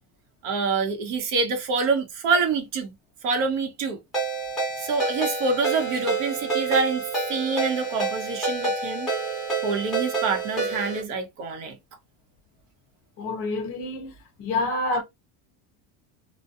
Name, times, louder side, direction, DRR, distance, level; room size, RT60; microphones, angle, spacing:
voice 1, 0.4-2.9 3.2-4.0 4.8-9.1 9.6-11.8, right 4 dB, 65° right, 0.9 m, -26 dB
Ringtone, 4.1-11.0, right 4 dB, ahead, 1.2 m, -28 dB
voice 2, 13.2-15.0, left 2 dB, 35° left, 0.6 m, -28 dB
2.6 x 2.2 x 2.3 m
cardioid pair, 180°, 40 cm